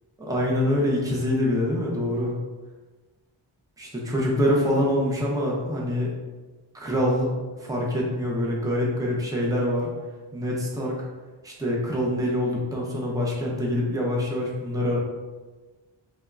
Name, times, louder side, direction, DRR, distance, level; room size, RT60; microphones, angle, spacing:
voice 1, 0.2-2.4 3.8-6.1 6.7-7.3 7.6-9.9 10.3-11.0 11.4-15.0, left 1 dB, 5° right, -3 dB, 0.7 m, -25 dB
3.5 x 3.2 x 2.4 m, 1.3 s
wide cardioid pair, 75°, 49 cm